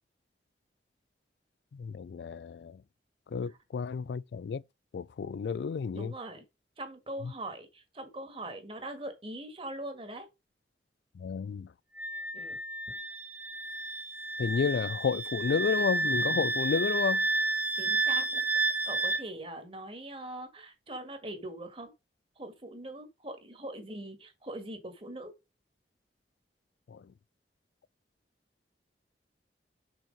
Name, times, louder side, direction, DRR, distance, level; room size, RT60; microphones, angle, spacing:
voice 1, 1.7-2.8 3.3-4.6 4.9-6.1 7.2-7.3 11.2-11.7 14.4-17.3 26.9-27.1, left 6 dB, 75° left, 0.3 m, -31 dB
voice 2, 5.9-6.4 6.8-10.3 12.3-12.6 17.7-18.4 18.8-21.9 22.4-25.3, right 1 dB, 30° right, 1.7 m, -42 dB
Wind instrument woodwind instrument, 12.0-19.2, right 3 dB, 10° right, 0.6 m, -31 dB
6.2 x 4.4 x 5.1 m
head